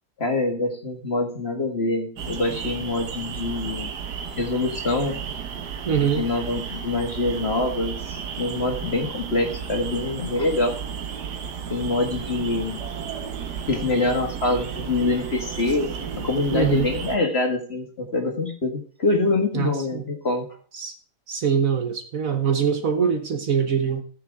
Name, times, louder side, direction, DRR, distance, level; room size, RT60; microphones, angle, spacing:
voice 1, 0.2-3.9 4.4-5.2 6.0-10.8 11.7-12.8 13.7-20.5, left 2 dB, 40° left, 3 dB, 1.9 m, -25 dB
sound 1, 2.2-17.2, right 7 dB, 75° right, 1.8 m, -33 dB
voice 2, 5.9-6.2 16.5-16.9 19.5-20.0 20.7-20.9 21.3-24.0, right 7 dB, 55° right, 7 dB, 1.3 m, -23 dB
15.0 x 6.8 x 3.5 m, 0.43 s
omnidirectional pair, 1.8 m